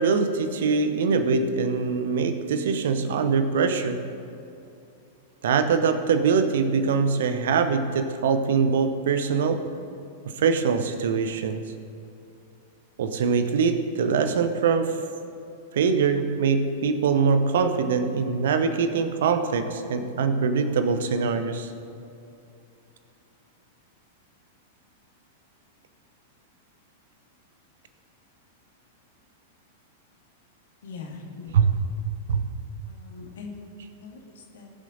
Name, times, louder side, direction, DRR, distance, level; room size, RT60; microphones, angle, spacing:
voice 1, 0.0-4.0 5.4-9.6 10.4-11.6 13.0-15.0 15.7-21.7 31.5-31.7 32.3-32.4, right 5 dB, 60° right, 10 dB, 0.9 m, -23 dB
voice 2, 30.8-31.7 32.8-33.5 34.0-34.7, left 4 dB, 60° left, 0 dB, 2.1 m, -41 dB
20.0 x 7.4 x 4.0 m, 2.6 s
figure-of-eight pair, 95°, 0 cm